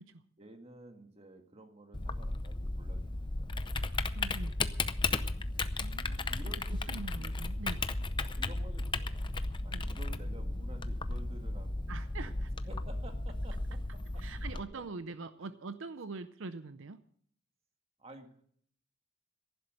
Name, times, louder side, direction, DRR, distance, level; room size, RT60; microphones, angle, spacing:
voice 1, 0.4-3.8 6.3-7.3 8.2-9.2 9.6-11.9 12.2-12.3 12.7-15.1 18.0-18.4, right 1 dB, 30° right, 5 dB, 1.8 m, -52 dB
Typing, 1.9-14.6, left 2 dB, 25° left, 0.6 m, -35 dB
voice 2, 4.1-4.6 5.8-6.3 6.9-7.8 9.7-9.8 11.9-12.5 14.2-17.0, right 3 dB, 70° right, 12 dB, 0.6 m, -43 dB
15.0 x 11.0 x 6.5 m, 0.63 s
head